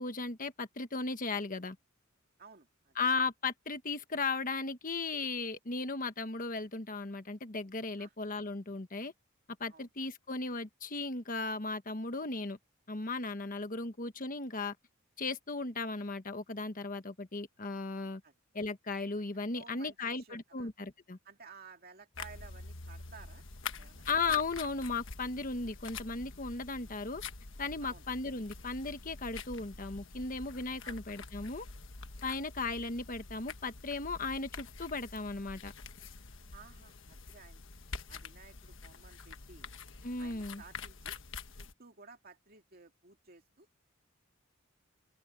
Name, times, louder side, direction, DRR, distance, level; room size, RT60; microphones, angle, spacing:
voice 1, 0.0-1.8 3.0-9.1 9.6-12.6 12.9-14.7 15.2-18.2 18.5-21.2 24.1-27.2 27.6-31.7 32.2-35.7 40.0-40.6, left 3 dB, 40° left, 1.3 m, -36 dB
voice 2, 2.4-3.0 8.0-8.1 9.7-9.9 18.2-18.3 19.2-20.7 21.2-23.4 23.7-24.1 27.8-28.1 30.8-31.0 32.2-32.3 36.5-37.6 38.1-39.7 40.2-41.2 41.6-43.7, right 5 dB, 45° right, 2.4 m, -55 dB
sound 1, 22.1-41.7, left 4 dB, 65° left, 1.4 m, -46 dB
head